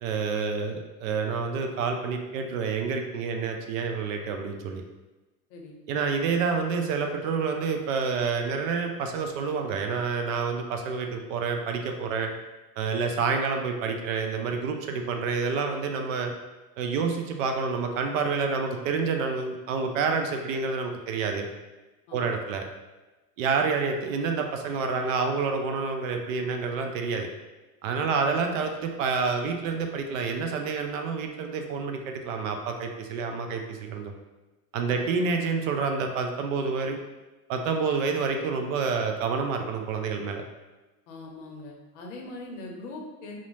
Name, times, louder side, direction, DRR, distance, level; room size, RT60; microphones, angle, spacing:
voice 1, 0.0-4.8 5.9-12.3 12.8-16.3 16.8-21.5 22.1-22.6 23.4-27.3 27.8-34.1 34.7-37.0 37.5-40.4, right 5 dB, 65° right, 4 dB, 0.5 m, -28 dB
voice 2, 41.1-43.4, left 2 dB, 55° left, 0 dB, 0.7 m, -41 dB
2.5 x 2.1 x 3.0 m, 1.1 s
supercardioid pair, 135°, 43 cm